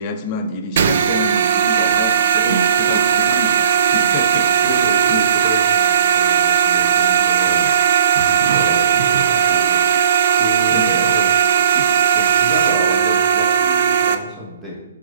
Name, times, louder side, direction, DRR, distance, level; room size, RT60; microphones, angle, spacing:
voice 1, 0.0-4.5 5.1-5.2 10.7-11.1, left 3 dB, 35° left, 7 dB, 0.5 m, -28 dB
sound 1, 0.8-14.1, right 8 dB, 55° right, 0.3 m, -16 dB
voice 2, 3.9-4.3 4.6-7.7 8.3-9.8 10.3-11.3 11.6-11.8 12.1-14.8, left 1 dB, 5° right, -5 dB, 1.2 m, -31 dB
4.7 x 4.1 x 2.5 m, 1.0 s
hypercardioid pair, 135°, 0 cm